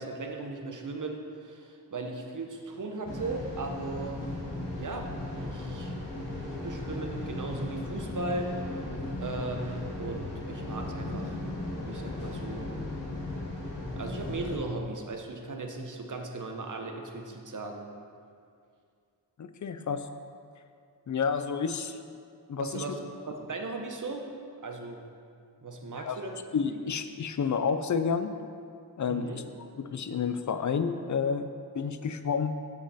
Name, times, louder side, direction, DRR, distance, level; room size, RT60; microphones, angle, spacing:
voice 1, 0.0-4.2 4.7-6.0 6.3-8.5 9.2-11.4 11.9-12.7 14.0-17.9 22.6-23.0 23.3-24.3 24.6-25.0 25.6-26.8 29.1-29.4, right 2 dB, 45° right, 3 dB, 1.0 m, -37 dB
sound 1, 3.0-14.6, left 1 dB, 90° left, 1.6 m, -36 dB
voice 2, 19.4-20.0 21.1-22.0 22.5-22.8 26.0-26.2 26.5-28.3 29.0-29.3 29.8-32.5, left 6 dB, 45° left, 10 dB, 0.5 m, -30 dB
7.4 x 6.2 x 4.2 m, 2.3 s
wide cardioid pair, 60°, 41 cm